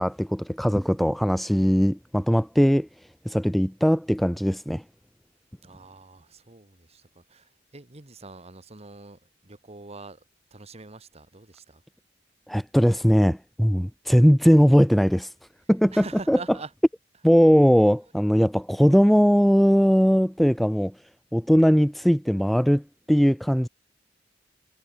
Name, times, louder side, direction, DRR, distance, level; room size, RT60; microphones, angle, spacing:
voice 1, 0.0-2.9 3.3-4.8 12.5-15.3 15.7-16.4 17.2-20.9 21.3-22.8 23.1-23.7, equal, ahead, 0.3 m, -20 dB
voice 2, 5.6-10.2 10.5-11.8 15.9-16.7, right 3 dB, 35° right, 1.6 m, -44 dB
head